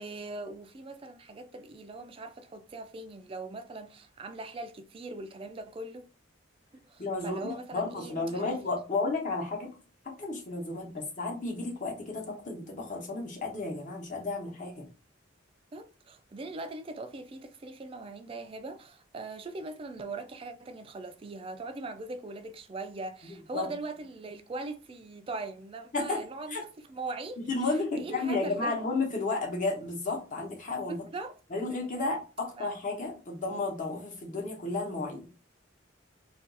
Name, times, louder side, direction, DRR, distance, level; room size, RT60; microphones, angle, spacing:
voice 1, 0.0-6.0 6.8-8.5 15.7-26.6 26.9-27.4 28.0-28.7 30.9-31.3 31.7-32.1 32.6-32.7, right 2 dB, 30° right, 0.3 m, -40 dB
voice 2, 7.0-9.7 10.2-14.9 23.2-23.7 25.9-26.6 27.4-31.1 31.5-35.3, left 3 dB, 40° left, 0.9 m, -33 dB
2.5 x 2.3 x 3.8 m
head